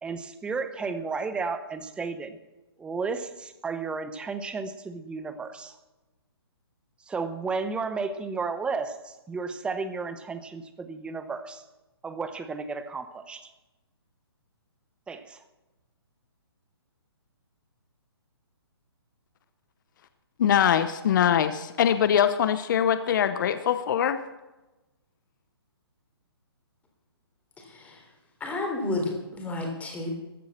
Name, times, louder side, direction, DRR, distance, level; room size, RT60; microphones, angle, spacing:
voice 1, 0.0-2.4 2.8-5.8 7.1-11.6 12.0-13.5 15.1-15.4, right 4 dB, 5° right, 10 dB, 0.9 m, -33 dB
voice 2, 20.4-24.2, left 9 dB, 50° left, 11 dB, 0.9 m, -23 dB
voice 3, 28.4-30.1, left 2 dB, 10° left, 2 dB, 3.6 m, -31 dB
15.0 x 10.5 x 7.3 m, 1.1 s
hypercardioid pair, 140°, 14 cm